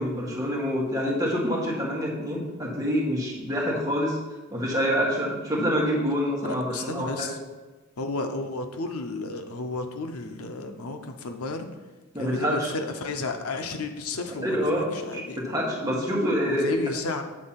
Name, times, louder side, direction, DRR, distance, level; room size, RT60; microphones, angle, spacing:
voice 1, 0.0-4.2 4.5-7.4 12.1-12.7 14.4-16.7, equal, 15° right, -4 dB, 1.6 m, -26 dB
voice 2, 6.4-7.4 8.0-11.7 12.2-14.7 14.9-15.4 16.5-17.2, left 3 dB, 90° left, 6 dB, 0.7 m, -32 dB
8.5 x 3.8 x 5.8 m, 1.2 s
head